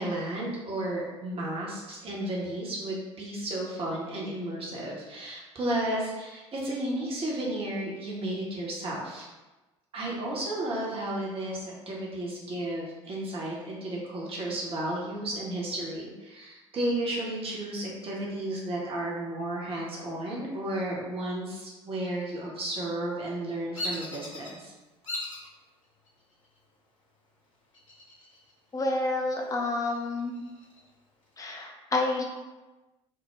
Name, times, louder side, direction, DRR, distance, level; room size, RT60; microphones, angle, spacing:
voice 1, 0.0-9.3 9.9-24.7, right 1 dB, 35° right, -4 dB, 0.8 m, -33 dB
Bird vocalization bird call bird song, 23.7-24.5 25.0-25.5 26.1-26.6 27.7-28.5 28.8-28.9 29.4-30.8, left 1 dB, 85° left, 0.5 m, -38 dB
voice 2, 28.7-30.4 31.4-32.2, left 2 dB, 20° left, 0 dB, 0.5 m, -29 dB
2.2 x 2.0 x 3.1 m, 1.1 s
figure-of-eight pair, 60°, 16 cm